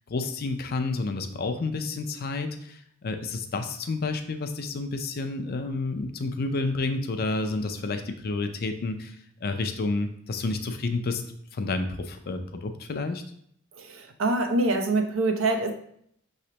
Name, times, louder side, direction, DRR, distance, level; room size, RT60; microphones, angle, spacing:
voice 1, 0.1-11.2 11.5-13.2, left 3 dB, 50° left, 7 dB, 0.5 m, -30 dB
voice 2, 13.8-15.7, right 2 dB, 70° right, 5 dB, 0.6 m, -25 dB
5.9 x 3.2 x 2.8 m, 0.68 s
head